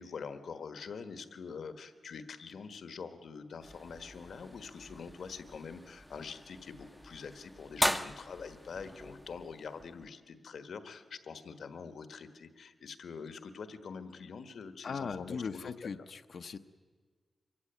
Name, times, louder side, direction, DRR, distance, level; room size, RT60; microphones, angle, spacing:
voice 1, 0.0-16.0, left 5 dB, 80° left, 10 dB, 1.4 m, -45 dB
sound 1, 3.6-10.1, equal, ahead, 0.7 m, -39 dB
voice 2, 14.8-16.6, left 5 dB, 60° left, 8 dB, 0.7 m, -39 dB
24.0 x 15.5 x 9.2 m, 1.5 s
wide cardioid pair, 160°, 0 cm